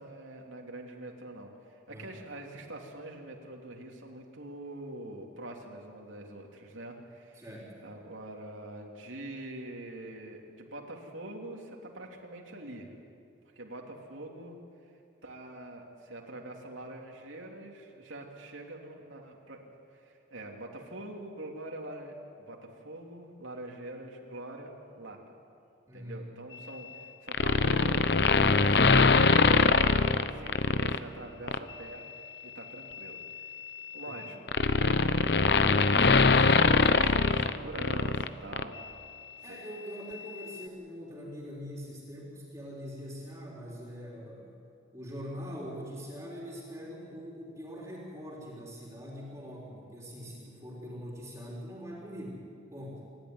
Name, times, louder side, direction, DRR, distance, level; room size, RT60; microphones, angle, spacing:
voice 1, 0.0-7.5 7.8-12.9 13.5-14.6 15.2-19.6 19.9-25.2 25.9-28.1 28.7-32.0 32.4-33.5 33.9-34.4 35.1-38.8 39.5-39.6, right 1 dB, 90° right, 0 dB, 3.0 m, -44 dB
voice 2, 7.4-7.7 25.9-26.3 34.1-34.3 39.4-44.6 44.9-52.4 52.7-53.1, equal, 15° right, -4 dB, 3.9 m, -43 dB
sound 1, 27.3-31.0 31.5-31.7 32.9-38.3 38.5-38.6, left 4 dB, 55° left, 0.8 m, -23 dB
27.5 x 12.5 x 9.7 m, 2.4 s
head